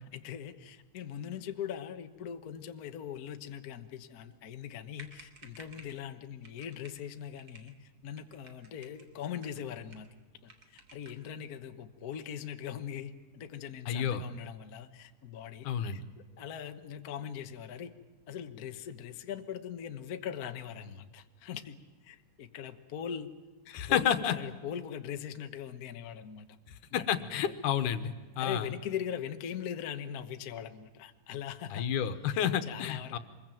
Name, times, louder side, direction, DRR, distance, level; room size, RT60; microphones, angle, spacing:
voice 1, 0.1-10.1 10.4-15.7 15.9-16.0 16.4-17.9 18.3-21.8 22.0-23.3 23.9-26.6 26.9-27.5 28.4-31.9 32.3-33.2, left 9 dB, 70° left, 8 dB, 0.8 m, -41 dB
sound 1, 4.7-4.8 4.9-6.0 6.4-7.0 7.4-7.7 8.1-9.1 9.4-10.2 10.5-11.3, right 3 dB, 30° right, 2.6 m, -54 dB
voice 2, 13.9-14.2 15.6-16.0 23.7-24.4 26.9-28.7 31.7-33.2, left 9 dB, 85° left, 11 dB, 2.6 m, -30 dB
25.0 x 21.5 x 9.0 m, 1.3 s
omnidirectional pair, 3.5 m